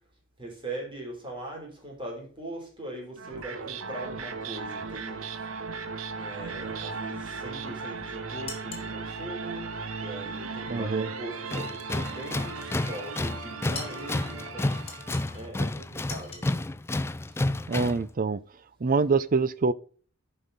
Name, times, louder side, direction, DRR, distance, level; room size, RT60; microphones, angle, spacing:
voice 1, 0.4-5.5 6.1-14.8 15.3-16.6, right 1 dB, 25° right, 3.9 m, -41 dB
sound 1, 3.2-15.4, right 4 dB, 75° right, 1.0 m, -37 dB
sound 2, 8.5-8.9 13.7-14.1 14.9-15.4 16.1-16.6, left 4 dB, 30° left, 2.6 m, -41 dB
voice 2, 10.7-11.1 17.7-18.4 18.8-19.7, right 4 dB, 40° right, 0.5 m, -25 dB
Tools, 11.5-18.1, left 2 dB, 10° left, 0.3 m, -31 dB
11.0 x 5.5 x 4.1 m
head